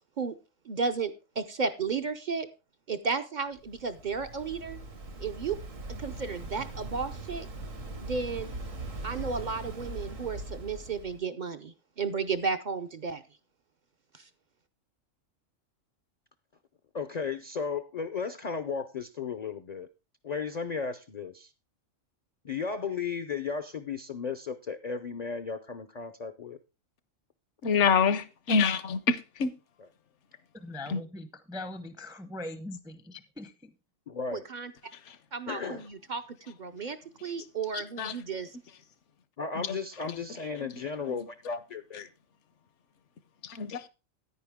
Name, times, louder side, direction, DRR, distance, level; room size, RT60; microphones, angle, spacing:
voice 1, 0.7-2.5 2.9-4.8 5.2-5.6 6.0-7.5 8.0-8.5 9.0-13.2 34.3-34.7 35.3-38.5, right 5 dB, 50° right, 0.6 m, -33 dB
Waves surf, 3.5-11.2, right 2 dB, 80° right, 2.1 m, -40 dB
voice 2, 16.9-19.9 20.2-21.5 22.4-26.6 34.1-34.5 35.5-35.8 39.4-42.1, left 5 dB, 50° left, 0.5 m, -35 dB
voice 3, 27.6-29.5 30.9-31.0 35.1-35.2 37.7-38.2 39.6-39.8 40.1-40.2 41.1-41.2 41.5-41.6 43.4-43.9, left 5 dB, 70° left, 1.1 m, -27 dB
voice 4, 30.5-33.7, left 1 dB, 5° right, 0.5 m, -41 dB
9.7 x 9.6 x 3.5 m
omnidirectional pair, 1.3 m